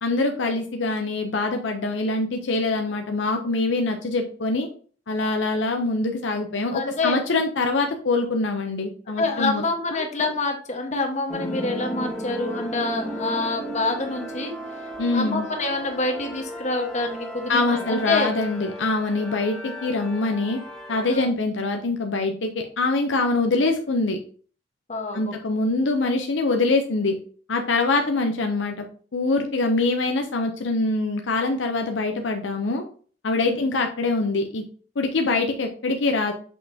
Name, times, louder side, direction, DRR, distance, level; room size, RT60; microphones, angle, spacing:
voice 1, 0.0-4.7 5.1-9.6 9.9-10.0 15.0-15.5 17.5-20.6 20.9-22.5 22.8-24.2 25.1-27.2 27.5-28.8 29.1-32.8 33.2-34.6 35.0-36.3, left 3 dB, 75° left, 4 dB, 0.7 m, -24 dB
voice 2, 6.7-7.2 9.1-14.5 15.1-18.3 21.0-21.3 24.9-25.4 33.3-33.6, left 3 dB, 40° left, 3 dB, 1.3 m, -27 dB
sound 1, 11.3-21.2, equal, 5° left, 1.6 m, -34 dB
6.5 x 5.4 x 2.8 m, 0.44 s
head